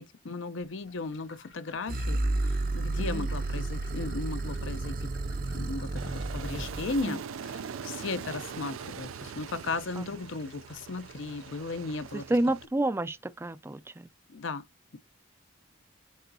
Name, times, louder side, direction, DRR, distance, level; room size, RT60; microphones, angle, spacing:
voice 1, 0.0-5.1 5.5-12.3 14.3-14.6, left 3 dB, 70° left, 0.6 m, -36 dB
sound 1, 0.7-12.3, left 4 dB, 90° left, 4.6 m, -57 dB
sound 2, 1.9-7.1, right 2 dB, 45° right, 0.6 m, -31 dB
Aircraft, 6.0-12.7, right 7 dB, 90° right, 0.4 m, -42 dB
voice 2, 12.1-14.1, right 1 dB, 10° right, 0.3 m, -30 dB
10.0 x 3.9 x 2.7 m
head